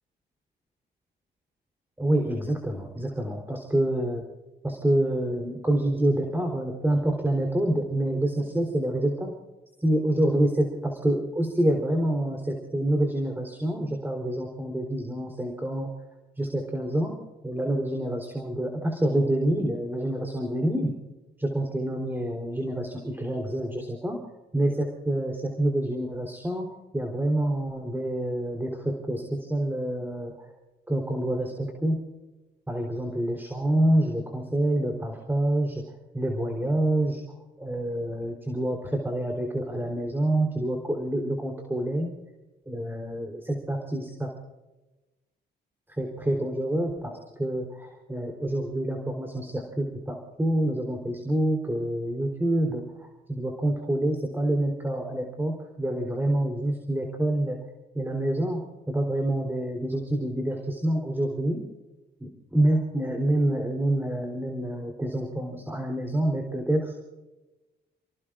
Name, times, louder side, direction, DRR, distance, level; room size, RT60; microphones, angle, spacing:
voice 1, 2.0-4.2 4.6-9.3 9.8-15.9 16.4-17.1 17.4-20.9 21.4-24.2 24.5-30.5 30.9-32.0 32.7-35.8 36.1-37.2 37.6-42.1 42.7-44.3 45.9-57.6 57.9-61.6 62.2-66.9, right 1 dB, 10° right, 2 dB, 3.6 m, -27 dB
29.5 x 18.0 x 2.5 m, 1.1 s
cardioid pair, 90°, 20 cm